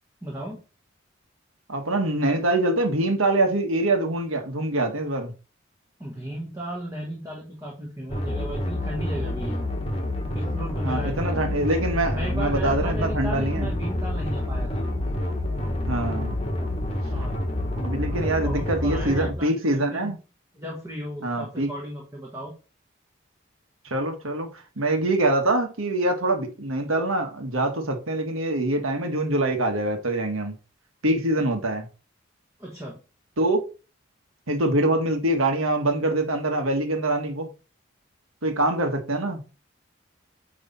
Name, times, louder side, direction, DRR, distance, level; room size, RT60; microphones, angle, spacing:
voice 1, 0.2-0.6 6.0-9.6 10.3-11.4 12.1-14.8 17.0-17.4 18.1-20.1 20.5-22.5 32.6-33.0, right 1 dB, 15° right, 1.3 m, -35 dB
voice 2, 1.7-5.3 10.8-13.7 15.8-16.3 17.2-17.3 17.7-20.2 21.2-21.7 23.8-30.5 31.0-31.9 33.4-33.6 34.5-37.5 38.4-39.4, right 1 dB, 85° right, 1.4 m, -24 dB
sound 1, 8.1-19.3, left 1 dB, 30° left, 1.2 m, -28 dB
9.1 x 3.2 x 4.2 m
head